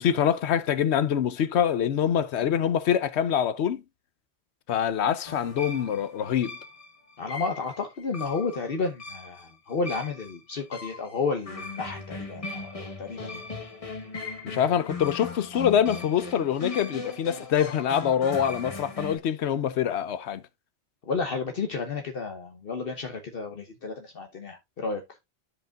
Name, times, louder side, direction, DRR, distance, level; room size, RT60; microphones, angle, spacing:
voice 1, 0.0-3.8 4.7-6.6 14.4-20.4, left 9 dB, 85° left, 1.0 m, -25 dB
sound 1, 5.3-19.2, left 3 dB, 35° left, 1.2 m, -38 dB
voice 2, 7.2-13.4 21.1-25.0, left 4 dB, 60° left, 1.1 m, -32 dB
13.0 x 5.1 x 2.3 m
omnidirectional pair, 1.1 m